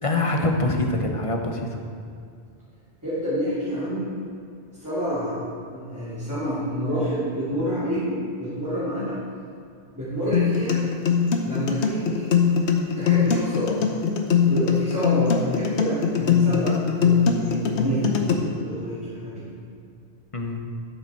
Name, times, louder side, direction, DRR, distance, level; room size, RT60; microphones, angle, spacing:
voice 1, 0.0-1.8 20.3-20.6, left 2 dB, 35° left, 2 dB, 0.9 m, -24 dB
voice 2, 3.0-4.1 4.8-9.2 9.9-10.9 11.4-12.3 13.0-14.0 14.4-19.5, equal, 15° right, -13 dB, 2.7 m, -28 dB
sound 1, 10.3-18.3, left 7 dB, 80° left, 1.1 m, -21 dB
12.0 x 6.8 x 4.4 m, 2.4 s
omnidirectional pair, 1.1 m